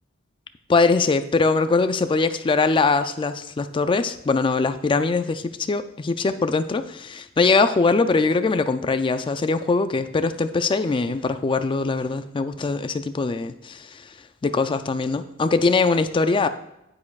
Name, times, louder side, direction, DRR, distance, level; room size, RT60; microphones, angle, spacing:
voice 1, 0.7-14.0 14.4-16.5, left 4 dB, 25° left, 10 dB, 0.4 m, -22 dB
9.8 x 8.4 x 2.4 m, 0.88 s
head